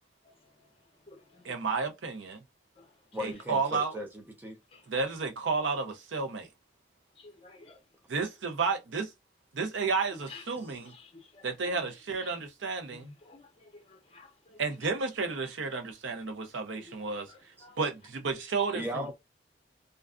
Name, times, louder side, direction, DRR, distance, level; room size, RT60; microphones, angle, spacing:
voice 1, 0.2-1.9 2.8-3.3 4.7-4.9 7.2-7.8 10.1-10.5 10.8-11.8 12.2-12.4 12.9-14.6 16.7-17.0 17.3-17.8, left 3 dB, 30° left, 0.6 m, -53 dB
voice 2, 1.4-2.4 3.2-4.0 4.9-6.5 8.1-9.1 9.5-10.9 11.4-13.1 14.6-17.3 17.8-19.1, right 4 dB, 85° right, 0.6 m, -32 dB
voice 3, 3.1-4.6 18.7-19.1, equal, 10° right, 0.5 m, -37 dB
2.3 x 2.2 x 2.4 m
head